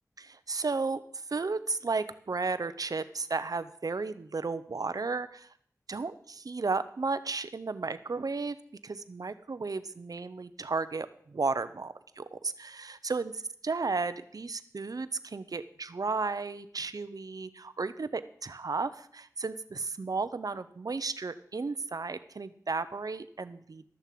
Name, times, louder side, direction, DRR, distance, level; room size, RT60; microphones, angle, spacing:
voice 1, 0.2-5.5 5.9-8.6 8.8-13.3 13.6-23.8, right 4 dB, 70° right, 13 dB, 0.8 m, -34 dB
13.0 x 7.0 x 7.7 m, 0.62 s
wide cardioid pair, 60°, 6 cm